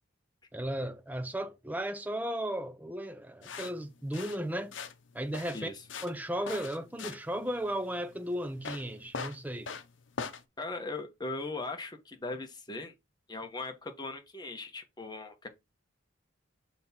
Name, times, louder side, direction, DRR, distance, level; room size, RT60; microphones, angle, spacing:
voice 1, 0.5-4.7 5.1-5.7 6.0-9.7, equal, 10° right, 0.6 m, -35 dB
sound 1, 3.4-10.4, left 5 dB, 70° left, 0.8 m, -42 dB
voice 2, 10.6-12.9 13.3-15.5, left 3 dB, 20° left, 1.1 m, -39 dB
6.2 x 3.5 x 4.3 m
head